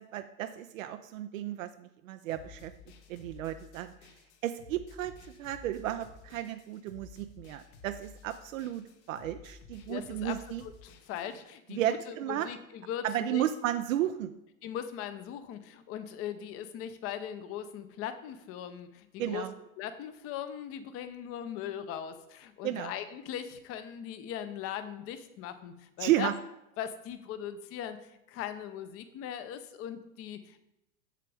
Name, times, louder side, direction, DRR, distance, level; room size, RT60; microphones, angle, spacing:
voice 1, 0.0-2.7 3.1-3.9 4.4-5.1 5.4-10.6 11.7-12.5 13.0-14.3 19.2-19.5 22.6-22.9 26.0-26.3, right 12 dB, 70° right, 9 dB, 0.6 m, -33 dB
sound 1, 2.3-11.4, left 4 dB, 60° left, 1.2 m, -53 dB
voice 2, 9.9-13.4 14.6-19.5 19.8-26.3 26.8-30.6, left 9 dB, 35° left, 11 dB, 0.7 m, -39 dB
7.5 x 6.6 x 3.4 m, 0.88 s
hypercardioid pair, 110°, 41 cm